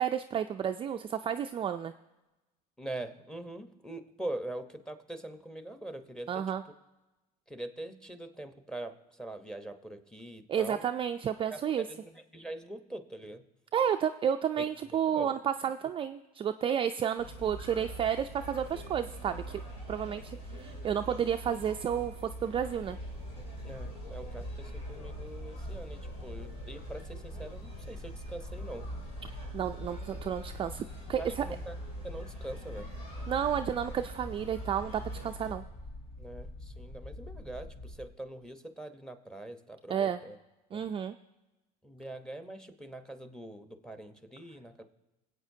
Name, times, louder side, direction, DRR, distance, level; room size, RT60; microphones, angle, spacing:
voice 1, 0.0-1.9 6.3-6.6 10.5-11.8 13.7-19.6 19.9-22.1 22.4-23.0 29.5-31.5 33.3-35.6 39.9-40.2 40.7-41.1, right 8 dB, 25° right, 7 dB, 0.3 m, -31 dB
voice 2, 2.8-6.4 7.5-10.8 11.5-13.4 14.6-14.7 15.1-15.3 23.6-28.9 31.2-31.7 32.0-32.9 36.2-40.4 40.7-40.8 41.8-44.8, right 1 dB, 5° left, 8 dB, 0.9 m, -43 dB
sound 1, 17.2-35.5, right 1 dB, 85° left, 3.0 m, -44 dB
sound 2, 22.7-38.0, left 2 dB, 55° left, 2.8 m, -45 dB
22.5 x 8.4 x 2.7 m, 1.0 s
supercardioid pair, 95°, 20 cm